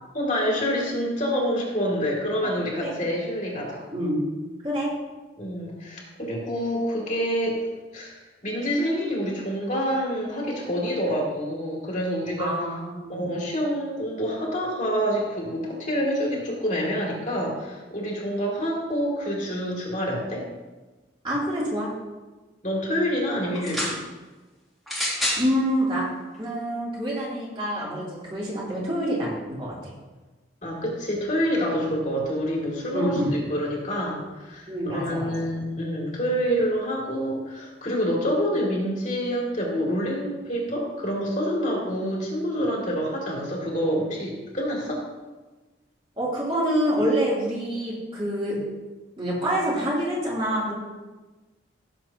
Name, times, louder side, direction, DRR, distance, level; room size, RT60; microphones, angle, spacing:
voice 1, 0.1-3.8 5.4-7.6 7.9-12.6 13.1-20.5 22.6-24.0 30.6-45.1, equal, 40° left, -3 dB, 2.7 m, -27 dB
voice 2, 12.4-13.2 21.2-21.9 25.4-26.0 26.4-29.9 32.9-33.3 34.7-35.3 46.2-48.6 49.2-50.7, equal, 25° right, -7 dB, 3.3 m, -26 dB
sound 1, 23.5-24.0 24.9-25.5 26.3-26.4, equal, ahead, 2.5 m, -27 dB
16.5 x 7.5 x 3.0 m, 1.2 s
head